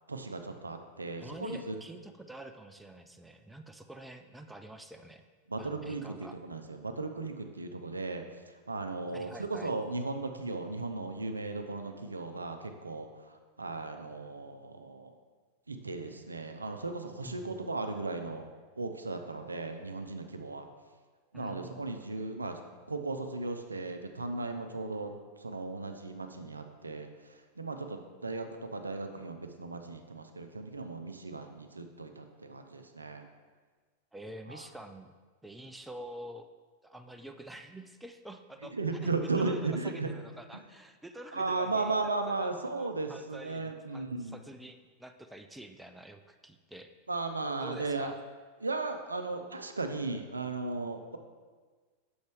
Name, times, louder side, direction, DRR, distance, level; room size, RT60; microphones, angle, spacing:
voice 1, 0.1-1.8 5.5-6.1 6.4-8.2 8.7-15.1 15.7-18.5 18.8-20.7 21.3-22.6 22.9-25.1 25.4-27.1 27.6-33.3 34.5-34.6 38.7-40.1 41.3-44.4 47.1-48.1 48.6-51.2, right 3 dB, 80° right, 6 dB, 0.4 m, -36 dB
voice 2, 1.2-5.2 5.6-6.4 9.1-9.7 17.2-17.6 21.3-21.8 34.1-35.1 35.4-36.5 36.8-46.9 47.6-48.2, right 1 dB, 5° right, 6 dB, 0.4 m, -47 dB
6.9 x 5.2 x 3.4 m, 1.5 s
figure-of-eight pair, 90°, 0 cm